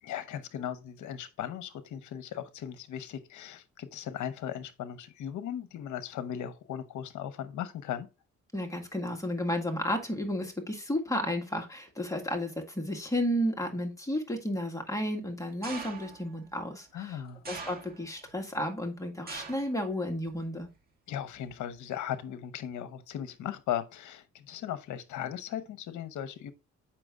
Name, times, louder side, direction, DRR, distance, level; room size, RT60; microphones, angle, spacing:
voice 1, 0.0-8.1 16.9-17.4 21.1-26.5, left 10 dB, 75° left, 0.9 m, -37 dB
voice 2, 8.5-17.2 17.5-20.7, left 1 dB, 10° left, 1.8 m, -32 dB
sound 1, 15.6-16.3 17.4-18.2 19.3-19.8 20.1-20.6 21.5-21.6, right 4 dB, 30° right, 2.1 m, -42 dB
7.6 x 5.8 x 2.4 m
cardioid pair, 90°, 30 cm